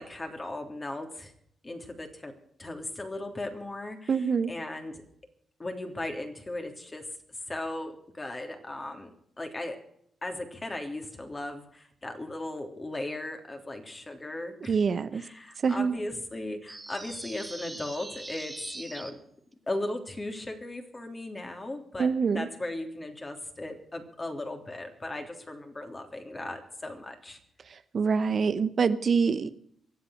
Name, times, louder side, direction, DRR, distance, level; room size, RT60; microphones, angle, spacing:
voice 1, 0.0-1.3 1.6-5.0 5.6-9.1 9.4-9.8 10.2-14.7 15.1-19.2 19.7-27.4, left 2 dB, 30° left, 5 dB, 3.4 m, -37 dB
voice 2, 4.1-4.5 14.7-15.2 15.6-16.0 22.0-22.5 27.7-29.5, right 5 dB, 55° right, 12 dB, 0.9 m, -25 dB
sound 1, 16.7-19.1, right 2 dB, 20° right, 2.0 m, -42 dB
23.0 x 8.1 x 6.6 m, 0.69 s
hypercardioid pair, 45°, 0 cm